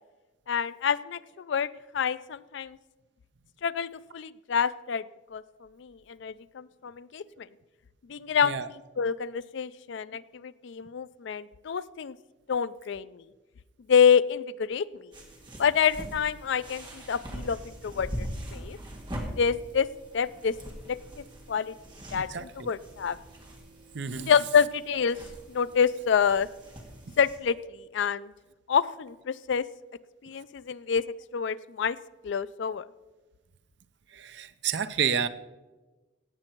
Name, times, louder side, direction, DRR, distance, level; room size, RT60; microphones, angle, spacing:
voice 1, 0.5-1.7 1.9-2.8 3.6-5.0 5.3-5.4 5.8-7.5 8.1-8.6 9.0-12.1 12.5-13.2 13.9-15.1 15.6-18.1 18.5-18.8 19.4-19.9 20.1-20.5 20.9-21.7 22.1-23.2 24.2-25.2 25.5-26.5 27.2-28.3 28.7-29.7 30.2-31.0 31.3-32.0 32.2-32.8, left 7 dB, 65° left, 17 dB, 0.4 m, -27 dB
sound 1, 15.1-27.4, equal, 25° right, 2.0 m, -42 dB
voice 2, 22.1-22.7 23.9-24.3 34.1-35.3, right 7 dB, 60° right, 12 dB, 0.6 m, -30 dB
17.0 x 7.7 x 4.5 m, 1.2 s
head